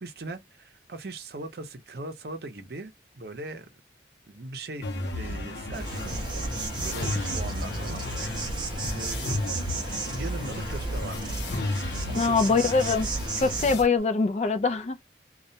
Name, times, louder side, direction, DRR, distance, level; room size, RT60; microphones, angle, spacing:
voice 1, 0.0-3.7 4.3-4.9 5.2-6.2 6.5-8.3 8.9-9.3 10.1-11.4 12.1-12.4, right 2 dB, 65° right, 0.6 m, -39 dB
sound 1, 4.8-13.8, left 1 dB, 80° left, 0.6 m, -33 dB
Insect, 5.7-13.8, right 3 dB, 25° right, 0.6 m, -35 dB
voice 2, 12.1-13.1 13.4-15.0, left 4 dB, 40° left, 0.4 m, -23 dB
2.3 x 2.1 x 2.6 m
head